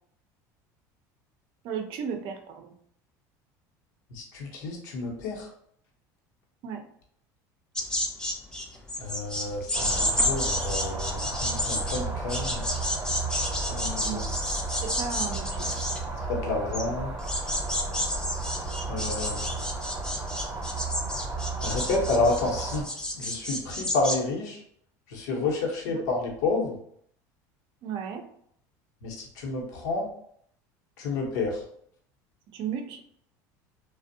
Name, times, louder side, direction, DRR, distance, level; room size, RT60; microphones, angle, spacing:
voice 1, 1.6-2.7 6.6-6.8 14.0-14.3 14.8-15.7 25.9-26.0 27.8-28.2 32.5-33.0, right 7 dB, 60° right, 5 dB, 0.5 m, -34 dB
voice 2, 4.1-5.5 9.0-12.6 13.7-14.3 16.3-17.1 18.9-19.6 21.6-22.9 23.1-24.6 25.1-26.8 29.0-30.1 31.0-31.6, left 3 dB, 85° left, 0 dB, 0.8 m, -30 dB
sound 1, 7.7-24.2, left 1 dB, 10° left, 0.4 m, -31 dB
sound 2, 9.7-22.8, right 3 dB, 25° right, 0.7 m, -33 dB
2.5 x 2.0 x 2.5 m, 0.67 s
supercardioid pair, 105°, 9 cm